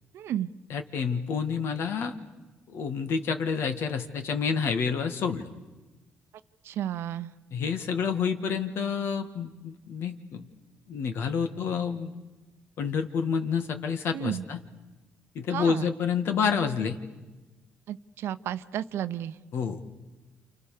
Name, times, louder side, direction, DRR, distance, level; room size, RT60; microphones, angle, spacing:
voice 1, 0.1-0.5 6.6-7.3 14.1-14.4 15.5-15.9 17.9-19.4, right 11 dB, 75° right, 12 dB, 0.9 m, -32 dB
voice 2, 0.7-2.1 2.7-5.5 7.5-10.5 10.9-12.2 12.8-14.6 15.4-17.0 19.5-19.8, left 6 dB, 70° left, 7 dB, 2.0 m, -28 dB
29.0 x 28.0 x 6.8 m, 1.2 s
cardioid pair, 95°, 4 cm